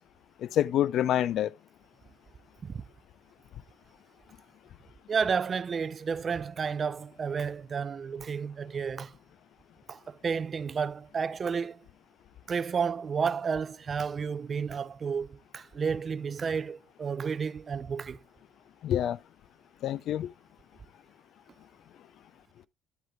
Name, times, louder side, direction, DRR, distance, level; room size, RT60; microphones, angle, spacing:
voice 1, 0.4-1.5 18.8-19.2 19.8-20.3, left 11 dB, 60° left, 0.4 m, -27 dB
voice 2, 5.1-9.1 9.9-11.9 12.5-18.2, right 6 dB, 35° right, 0.4 m, -31 dB
10.5 x 7.9 x 2.2 m
cardioid pair, 105°, 0 cm